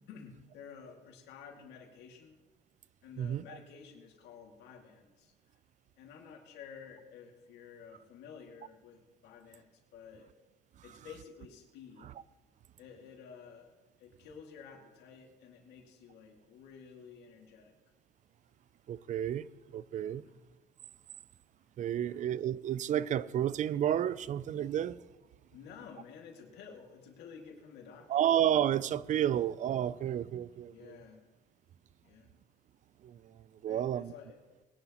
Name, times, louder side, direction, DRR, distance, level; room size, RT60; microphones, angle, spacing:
voice 1, 0.1-2.4 3.0-5.3 6.0-9.6 9.9-10.3 10.8-12.1 12.8-17.7 20.2-20.4 21.9-22.2 25.5-28.2 30.6-31.3 32.0-32.4 33.7-34.4, left 6 dB, 85° left, 2.4 m, -52 dB
voice 2, 18.9-19.5 19.7-20.2 21.8-25.0 28.1-31.0 33.0-33.3 33.6-34.1, right 10 dB, 45° right, 0.4 m, -31 dB
20.5 x 11.0 x 3.0 m
cardioid pair, 110°, 17 cm